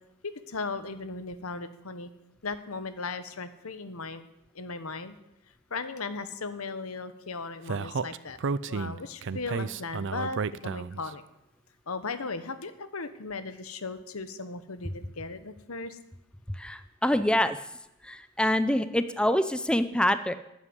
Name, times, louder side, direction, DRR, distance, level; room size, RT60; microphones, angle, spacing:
voice 1, 0.2-2.1 2.4-4.2 4.5-5.1 5.7-8.4 8.7-11.2 11.9-16.0, left 4 dB, 90° left, 11 dB, 1.2 m, -37 dB
Speech, 7.7-11.1, right 5 dB, 60° right, 0.5 m, -32 dB
voice 2, 16.5-17.6 18.0-20.3, left 1 dB, 5° left, 11 dB, 0.6 m, -26 dB
12.5 x 8.3 x 9.7 m, 0.87 s
head